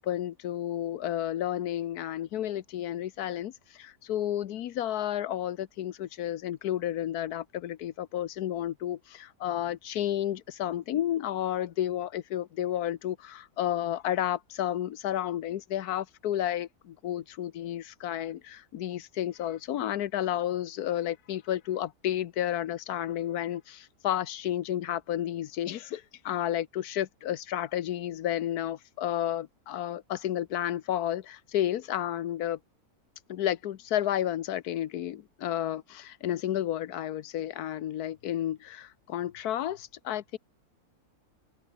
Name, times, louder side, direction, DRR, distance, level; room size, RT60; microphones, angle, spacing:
voice 1, 0.0-32.6 33.3-40.4, left 11 dB, 90° left, 1.4 m, -31 dB
open air
omnidirectional pair, 1.6 m